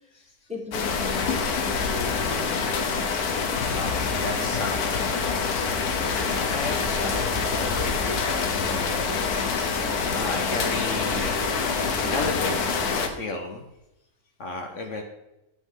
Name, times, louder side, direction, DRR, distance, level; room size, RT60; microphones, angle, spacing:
voice 1, 0.5-2.7, left 3 dB, 5° right, 0 dB, 1.3 m, -37 dB
sound 1, 0.7-13.1, left 5 dB, 85° left, 1.5 m, -26 dB
voice 2, 2.9-3.3 3.7-5.7 6.1-9.3 10.1-11.6 12.1-12.6 12.9-13.6 14.4-15.0, left 3 dB, 60° left, 4 dB, 1.2 m, -34 dB
10.0 x 7.4 x 3.7 m, 0.91 s
omnidirectional pair, 1.6 m